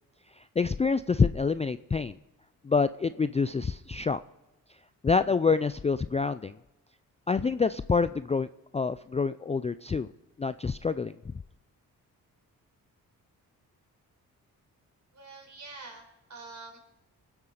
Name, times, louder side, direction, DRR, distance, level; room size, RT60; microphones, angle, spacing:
voice 1, 0.6-2.1 2.6-4.2 5.0-6.5 7.3-8.5 8.7-10.1 10.4-11.1, left 4 dB, 20° left, 13 dB, 0.4 m, -26 dB
voice 2, 15.1-16.8, right 3 dB, 45° right, 2 dB, 4.8 m, -46 dB
21.5 x 8.0 x 5.0 m, 0.99 s
supercardioid pair, 55°, 38 cm